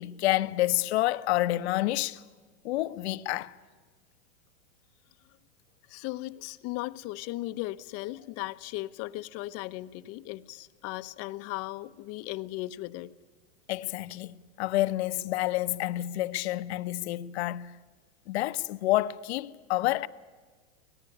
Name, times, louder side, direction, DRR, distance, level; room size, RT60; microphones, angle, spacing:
voice 1, 0.0-2.2 2.6-3.5 13.7-17.7 18.3-20.1, left 16 dB, 65° left, 1.1 m, -28 dB
voice 2, 5.9-13.1, left 18 dB, 40° left, 1.0 m, -37 dB
25.0 x 18.5 x 9.9 m
hypercardioid pair, 120°, 36 cm